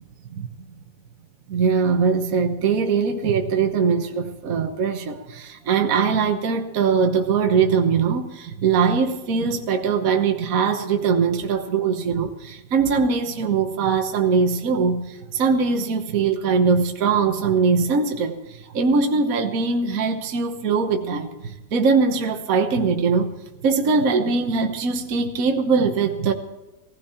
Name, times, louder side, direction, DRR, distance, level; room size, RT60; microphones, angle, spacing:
voice 1, 1.5-23.3 23.6-26.3, right 5 dB, 50° right, 5 dB, 1.5 m, -21 dB
17.5 x 15.5 x 4.4 m, 1.1 s
omnidirectional pair, 2.0 m